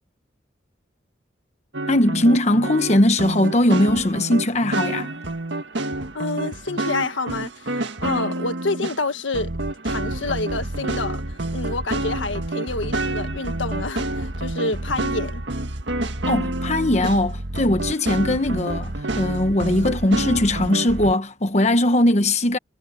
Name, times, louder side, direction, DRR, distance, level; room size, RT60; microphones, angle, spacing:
sound 1, 1.7-9.0 9.3-21.1, right 2 dB, 70° right, 1.7 m, -28 dB
voice 1, 1.9-5.1 16.2-22.6, left 1 dB, 35° left, 1.1 m, -20 dB
voice 2, 6.1-9.5 9.8-11.2 11.5-15.4, left 3 dB, 90° left, 1.6 m, -28 dB
head